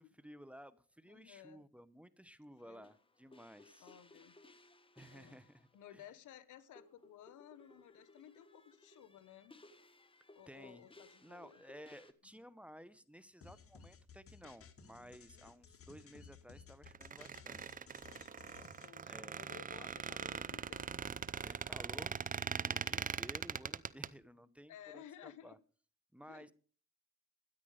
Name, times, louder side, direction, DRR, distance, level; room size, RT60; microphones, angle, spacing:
voice 1, 0.0-3.9 4.9-6.0 10.5-10.9 11.2-17.9 19.0-19.4 19.8-19.9 21.4-25.6 26.1-26.5, equal, 5° right, 1.0 m, -56 dB
voice 2, 1.1-1.7 2.6-2.9 3.8-4.4 5.1-5.4 5.7-9.6 10.3-11.6 12.3-12.4 15.3-15.8 18.0-21.0 24.7-25.6 26.3-26.5, left 11 dB, 80° left, 1.2 m, -57 dB
sound 1, 2.6-5.8 6.1-6.2 6.5-12.1, left 2 dB, 15° left, 1.5 m, -62 dB
sound 2, 13.4-18.9, left 5 dB, 50° left, 1.8 m, -58 dB
Squeak, 16.9-24.1, right 6 dB, 30° right, 0.6 m, -41 dB
13.0 x 10.0 x 5.0 m
cardioid pair, 90°, 30 cm